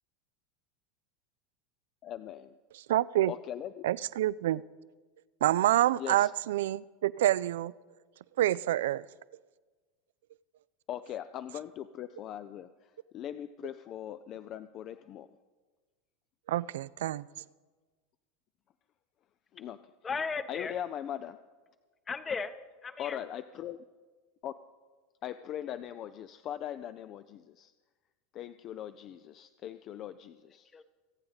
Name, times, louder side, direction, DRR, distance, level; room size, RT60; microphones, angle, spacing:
voice 1, 2.0-2.6 3.3-3.9 6.0-6.3 10.9-15.3 19.5-19.8 20.5-21.4 23.0-23.8 24.4-24.5 25.2-27.7 28.3-30.7, left 10 dB, 45° left, 0.4 m, -40 dB
voice 2, 2.9-3.3 3.8-4.6 5.4-7.7 8.4-9.0 16.5-17.3, right 13 dB, 75° right, 0.3 m, -27 dB
voice 3, 20.0-20.8 22.1-22.5 22.8-23.2 30.7-30.8, left 5 dB, 25° left, 0.9 m, -35 dB
26.0 x 8.7 x 4.0 m
hypercardioid pair, 95°, 0 cm